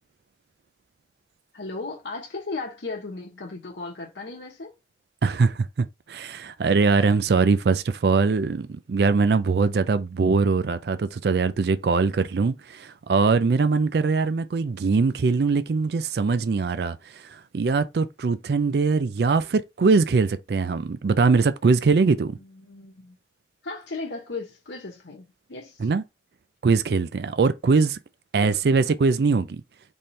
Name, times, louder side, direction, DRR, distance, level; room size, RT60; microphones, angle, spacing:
voice 1, 1.5-4.7 21.8-23.2 23.6-25.8 28.4-28.9, left 3 dB, 80° left, 1.0 m, -36 dB
voice 2, 5.2-17.0 17.3-22.4 25.8-26.0 26.6-28.0 28.3-29.6, right 4 dB, 65° right, 0.4 m, -22 dB
4.2 x 3.6 x 3.1 m
head